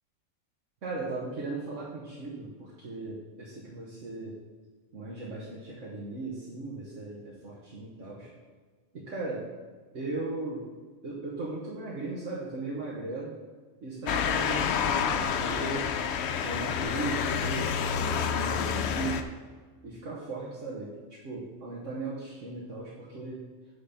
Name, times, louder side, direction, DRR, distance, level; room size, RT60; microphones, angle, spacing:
voice 1, 0.8-4.4 4.9-8.3 8.9-9.5 9.9-10.7 11.0-13.3 13.8-15.9 16.4-17.7 18.0-19.3 19.8-23.4, right 3 dB, 80° right, -5 dB, 1.5 m, -37 dB
Motor vehicle (road) / Siren, 14.1-19.2, left 7 dB, 70° left, 0.8 m, -28 dB
8.6 x 3.9 x 5.7 m, 1.5 s
omnidirectional pair, 1.3 m